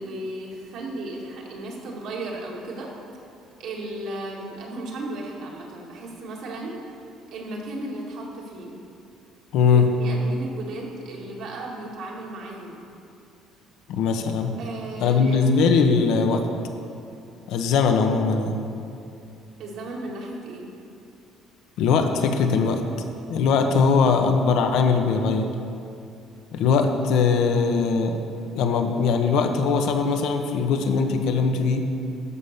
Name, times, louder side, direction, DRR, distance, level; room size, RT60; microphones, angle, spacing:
voice 1, 0.0-2.9 3.6-6.8 7.3-8.8 9.7-12.8 14.6-15.4 19.6-20.7, right 2 dB, 65° right, -2 dB, 2.2 m, -35 dB
voice 2, 9.5-9.9 13.9-14.6 15.0-16.4 17.5-18.6 21.8-22.8 23.3-25.5 26.5-28.2 28.5-31.8, left 5 dB, 75° left, 5 dB, 1.0 m, -20 dB
12.5 x 5.6 x 6.6 m, 2.6 s
cardioid pair, 135°, 0 cm